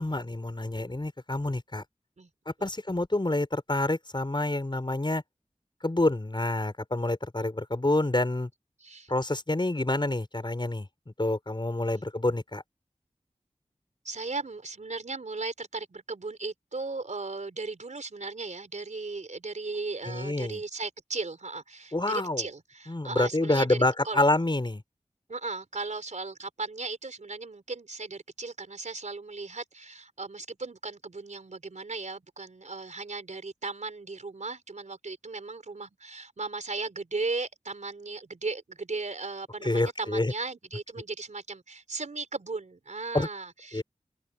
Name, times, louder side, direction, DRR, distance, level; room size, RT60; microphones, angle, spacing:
voice 1, 0.0-1.8 2.5-5.2 5.8-8.5 9.1-10.9 11.2-12.6 20.1-20.6 21.9-22.4 22.9-24.8 39.6-40.3 43.1-43.3 43.7-43.8, left 2 dB, 40° left, 5.6 m, -27 dB
voice 2, 8.8-9.1 11.9-12.0 14.0-24.2 25.3-43.8, right 3 dB, 85° right, 4.6 m, -36 dB
open air
wide cardioid pair, 45°, 12 cm